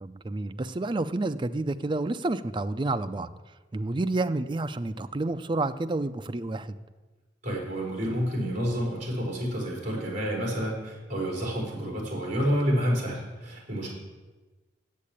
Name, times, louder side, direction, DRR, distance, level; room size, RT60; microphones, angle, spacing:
voice 1, 0.0-3.3 3.7-6.7, right 2 dB, 25° right, 0.4 m, -29 dB
voice 2, 7.4-13.9, equal, 45° right, 4.4 m, -29 dB
8.4 x 7.5 x 8.6 m
head